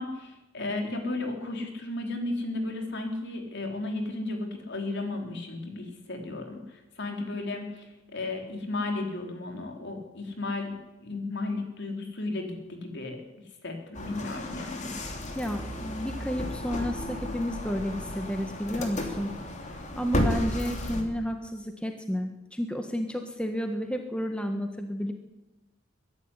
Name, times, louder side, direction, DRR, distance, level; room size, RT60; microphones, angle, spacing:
voice 1, 0.0-13.2 13.6-14.9, left 2 dB, 60° left, 3 dB, 4.0 m, -34 dB
sound 1, 13.9-21.0, left 1 dB, 35° left, 3.1 m, -33 dB
voice 2, 15.3-19.3 20.0-25.1, equal, 5° left, 5 dB, 1.4 m, -31 dB
22.5 x 11.5 x 9.9 m, 1.0 s
head